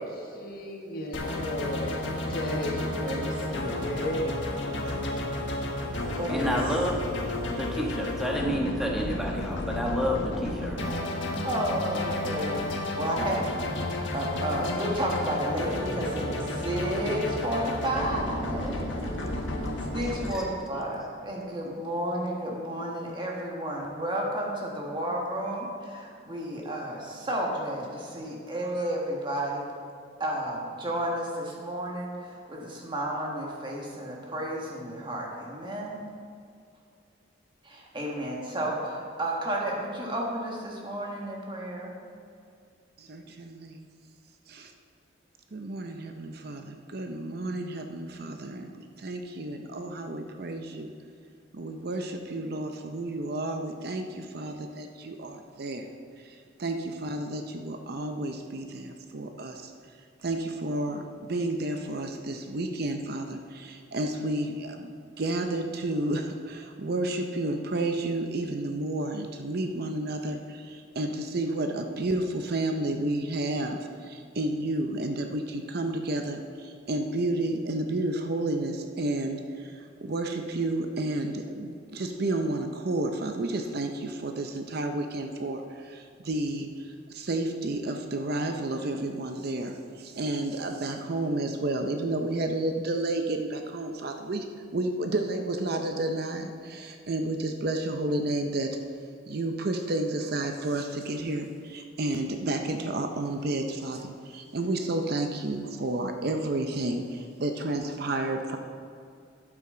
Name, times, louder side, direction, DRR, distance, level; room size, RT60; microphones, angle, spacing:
voice 1, 0.0-2.0 2.3-3.2 3.8-4.3 4.8-4.9, left 1 dB, 50° left, 1 dB, 1.4 m, -34 dB
sound 1, 1.1-20.3, left 1 dB, 70° left, 1.4 m, -32 dB
voice 2, 2.8-4.1 6.2-6.6 11.4-13.4 13.7-13.8 14.1-19.1 19.9-29.6 30.2-36.0 37.6-42.0, right 1 dB, 25° right, -2 dB, 1.6 m, -32 dB
voice 3, 6.3-7.0 7.6-10.8, equal, ahead, -2 dB, 1.3 m, -29 dB
voice 4, 43.0-43.9 44.5-44.7 45.5-48.7 49.0-50.9 51.5-55.9 56.2-59.7 60.2-64.9 65.2-94.5 94.7-98.8 99.3-108.6, right 2 dB, 55° right, 5 dB, 0.6 m, -31 dB
12.0 x 8.8 x 3.8 m, 2.3 s
head